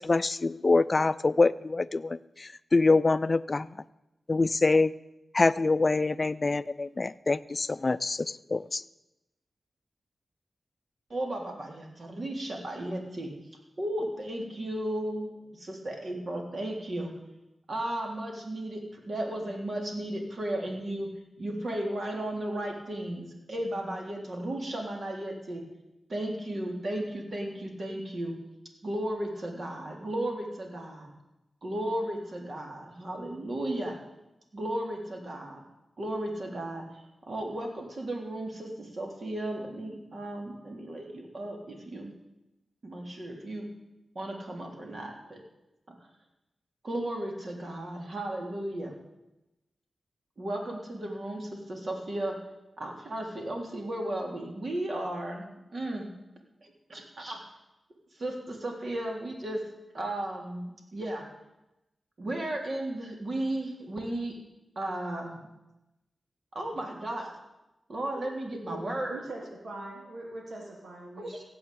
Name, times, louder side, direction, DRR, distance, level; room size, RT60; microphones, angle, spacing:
voice 1, 0.0-3.8 4.3-4.9 5.3-8.8, left 3 dB, 40° left, 16 dB, 0.5 m, -25 dB
voice 2, 11.1-13.3 13.8-17.1 17.7-21.1 21.4-25.6 26.1-28.3 28.8-31.1 31.6-34.0 34.5-35.6 36.0-42.1 42.8-43.7 44.2-45.4 45.9-46.0 46.8-49.0 50.4-52.4 52.8-56.1 56.6-57.4 58.1-59.6 59.9-61.3 62.2-64.4 64.8-65.5 66.5-67.4 67.9-69.2 71.2-71.4, right 1 dB, 55° right, 1 dB, 3.5 m, -35 dB
voice 3, 69.1-71.5, right 2 dB, 80° right, -1 dB, 2.9 m, -41 dB
16.0 x 8.0 x 8.6 m, 0.95 s
cardioid pair, 65°, 0 cm